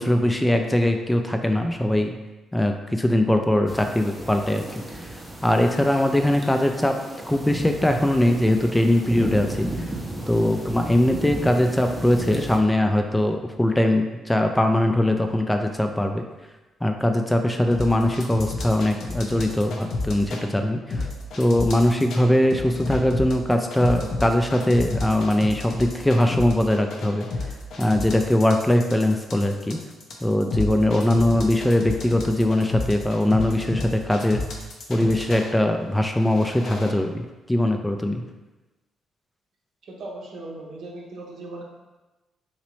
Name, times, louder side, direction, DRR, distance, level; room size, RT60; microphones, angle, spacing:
voice 1, 0.0-2.2 2.5-5.2 5.4-7.0 7.2-9.9 10.3-16.2 16.8-21.1 21.4-27.3 27.8-29.8 30.2-34.4 34.9-38.2, left 1 dB, 10° left, 5 dB, 0.3 m, -21 dB
sound 1, 3.7-12.6, right 1 dB, 20° right, 0.7 m, -34 dB
sound 2, 17.7-20.4 20.9-22.2 22.5-35.5 36.1-36.9, left 3 dB, 60° left, 0.5 m, -31 dB
voice 2, 39.9-41.6, right 2 dB, 60° right, -2 dB, 0.7 m, -38 dB
3.0 x 2.8 x 3.0 m, 1.1 s
hypercardioid pair, 45°, 0 cm